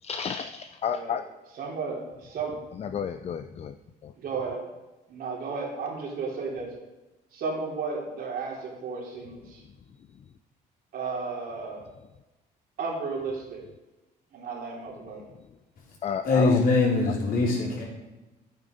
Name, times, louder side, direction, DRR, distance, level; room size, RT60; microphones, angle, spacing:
voice 1, 0.0-1.2 2.7-3.8 4.0-4.1 10.1-10.2 15.3-15.4 16.0-16.6, left 7 dB, 40° left, 9 dB, 0.6 m, -32 dB
voice 2, 1.6-2.5 4.2-4.6 5.1-6.7 7.3-9.6 10.9-11.9 12.8-13.7 14.3-15.2, right 4 dB, 60° right, -1 dB, 3.6 m, -33 dB
voice 3, 16.2-17.8, left 3 dB, 60° left, -3 dB, 4.7 m, -22 dB
11.0 x 9.2 x 5.3 m, 1.1 s
cardioid pair, 110°, 17 cm